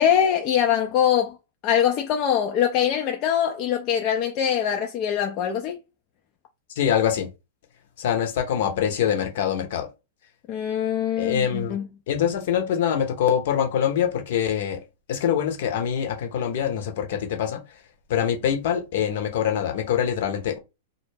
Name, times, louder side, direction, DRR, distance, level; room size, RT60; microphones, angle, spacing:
voice 1, 0.0-1.4 1.6-5.8 10.5-11.9, left 9 dB, 40° left, 0.4 m, -23 dB
voice 2, 6.8-7.3 8.0-9.9 11.2-11.8 12.1-14.8 15.1-17.6 18.1-20.6, left 9 dB, 60° left, 0.7 m, -24 dB
2.2 x 2.0 x 3.2 m
hypercardioid pair, 110°, 0 cm